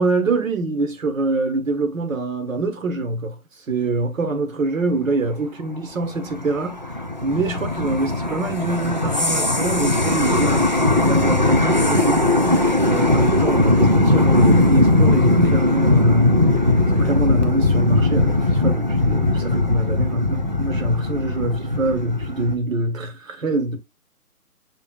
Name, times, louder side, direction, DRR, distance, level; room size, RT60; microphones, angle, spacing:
voice 1, 0.0-3.3 3.7-6.8 7.2-10.6 11.0-12.6 12.8-16.4 16.8-23.8, right 2 dB, 60° right, 1.5 m, -24 dB
sound 1, 6.0-22.5, left 2 dB, 35° right, 0.4 m, -19 dB
6.5 x 3.3 x 2.4 m
figure-of-eight pair, 155°, 45 cm